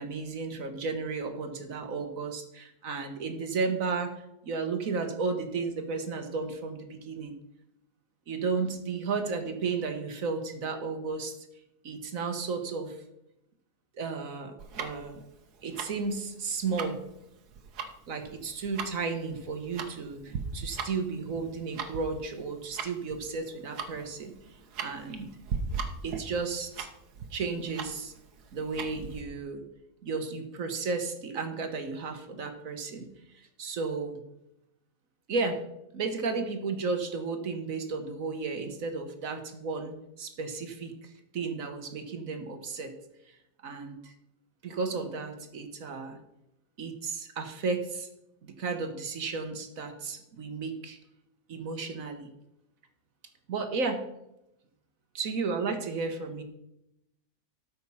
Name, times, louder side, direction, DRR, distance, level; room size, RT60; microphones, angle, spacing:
voice 1, 0.0-4.1 4.4-7.4 8.3-11.4 11.8-13.0 14.0-15.2 15.6-17.0 18.1-24.3 24.8-25.3 26.0-26.9 27.3-28.1 28.5-29.6 30.0-33.1 33.6-34.2 35.3-35.6 35.9-42.9 43.6-44.1 44.6-46.2 46.8-48.1 48.4-51.0 51.5-52.3 53.5-54.0 55.1-56.4, right 4 dB, 60° right, 6 dB, 1.5 m, -33 dB
Tick-tock, 14.6-29.2, right 5 dB, 90° right, 1.6 m, -39 dB
13.0 x 5.4 x 5.5 m, 0.83 s
omnidirectional pair, 1.6 m